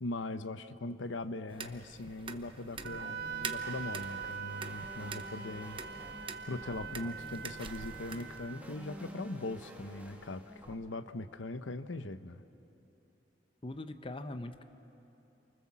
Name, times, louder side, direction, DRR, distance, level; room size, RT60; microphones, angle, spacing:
voice 1, 0.0-6.0 6.4-12.4, left 2 dB, 90° left, 12 dB, 0.9 m, -40 dB
sound 1, 1.5-8.5, right 5 dB, 30° right, 0.9 m, -46 dB
sound 2, 2.7-10.7, equal, 10° right, 2.5 m, -50 dB
Wind instrument woodwind instrument, 2.8-8.6, right 6 dB, 60° right, 1.0 m, -43 dB
voice 2, 13.6-14.6, left 1 dB, 30° left, 9 dB, 0.8 m, -41 dB
28.5 x 25.0 x 7.4 m, 3.0 s
head